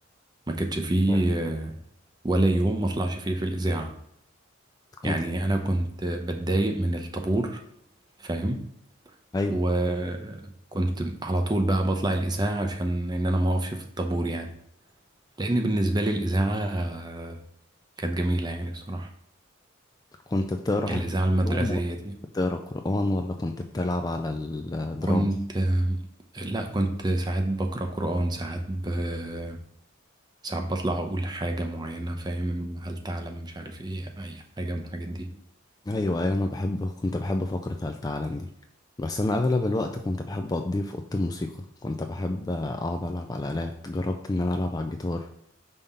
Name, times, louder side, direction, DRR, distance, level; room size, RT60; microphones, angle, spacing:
voice 1, 0.5-1.7 2.2-4.0 5.0-7.6 8.2-8.7 9.5-14.5 15.4-17.4 18.0-19.1 20.9-22.2 25.1-26.0 26.3-29.6 30.4-35.3, right 1 dB, 20° right, 4 dB, 0.6 m, -27 dB
voice 2, 20.3-21.1 21.5-21.8 22.3-25.3 35.9-38.5 39.0-45.3, left 2 dB, 20° left, 5 dB, 0.3 m, -28 dB
5.5 x 3.5 x 5.4 m, 0.73 s
head